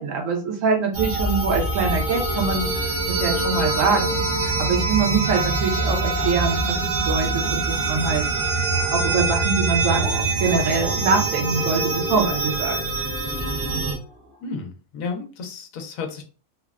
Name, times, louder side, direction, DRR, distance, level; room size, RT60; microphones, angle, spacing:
voice 1, 0.0-8.2 8.9-12.8, right 4 dB, 75° right, 2 dB, 1.1 m, -24 dB
sound 1, 0.9-13.9, right 2 dB, 55° right, 0.9 m, -24 dB
Wind instrument woodwind instrument, 5.2-9.5, right 11 dB, 45° left, 0.6 m, -32 dB
sound 2, 5.7-9.3 9.9-14.4, equal, 5° right, 0.7 m, -39 dB
voice 2, 14.4-16.2, left 4 dB, 85° left, 4 dB, 1.0 m, -32 dB
3.3 x 2.1 x 2.3 m, 0.37 s
omnidirectional pair, 1.4 m